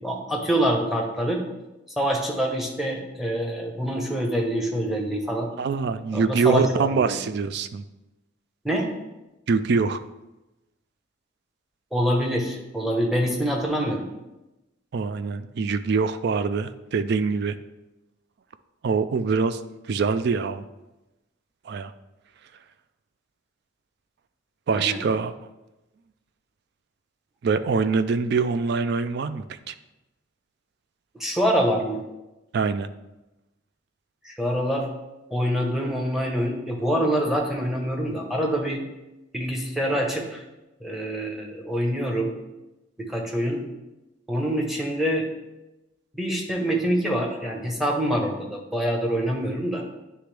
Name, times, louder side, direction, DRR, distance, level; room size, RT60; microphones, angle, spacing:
voice 1, 0.0-1.5 2.0-5.5 6.1-7.2 8.6-8.9 11.9-14.1 24.7-25.0 31.1-32.0 34.2-34.9 35.3-38.8 39.3-40.4 40.8-42.3 43.0-43.6 44.3-45.3 46.1-49.8, equal, ahead, 0 dB, 0.8 m, -25 dB
voice 2, 5.6-7.8 9.5-10.0 14.9-17.6 18.8-19.6 19.9-20.6 21.7-21.9 24.7-25.3 27.4-29.7 32.5-32.9, right 5 dB, 55° right, 12 dB, 0.3 m, -24 dB
9.6 x 3.4 x 3.3 m, 1.0 s
head